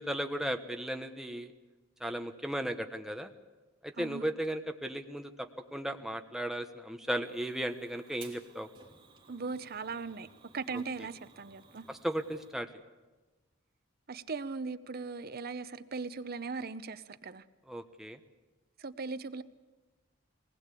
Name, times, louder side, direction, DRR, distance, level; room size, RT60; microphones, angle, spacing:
voice 1, 0.0-1.5 2.0-3.3 3.8-8.7 10.7-10.8 11.9-12.7 17.7-18.2, right 1 dB, ahead, 1.2 m, -36 dB
Fire, 7.2-12.5, right 4 dB, 25° right, 3.3 m, -58 dB
voice 2, 9.3-10.3 10.5-11.9 14.1-17.4 18.8-19.4, right 4 dB, 50° right, 0.8 m, -39 dB
22.5 x 19.5 x 8.4 m
head